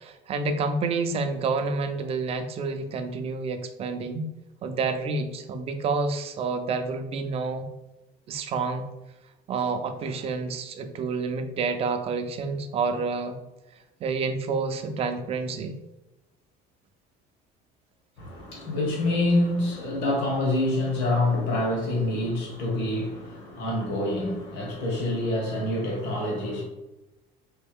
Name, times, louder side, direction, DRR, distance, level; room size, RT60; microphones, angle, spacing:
voice 1, 0.0-4.3 4.6-7.7 8.3-8.9 9.5-13.4 14.0-15.7, right 4 dB, 35° right, 8 dB, 0.4 m, -29 dB
voice 2, 18.2-26.6, left 1 dB, 75° left, -2 dB, 1.4 m, -26 dB
4.3 x 3.0 x 3.4 m, 1.0 s
cardioid pair, 160°, 18 cm